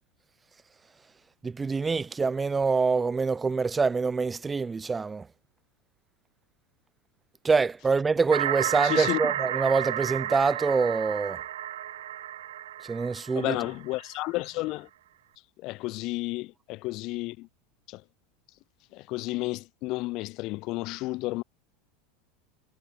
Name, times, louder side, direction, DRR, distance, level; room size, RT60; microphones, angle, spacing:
voice 1, 1.4-5.3 7.4-11.4 12.8-13.6, right 4 dB, 20° right, 0.8 m, -25 dB
sound 1, 8.3-14.0, right 12 dB, 85° right, 0.5 m, -32 dB
voice 2, 8.8-9.2 13.3-14.9 15.6-17.5 17.9-18.0 18.9-21.4, left 21 dB, 55° left, 0.9 m, -32 dB
hypercardioid pair, 100°, 0 cm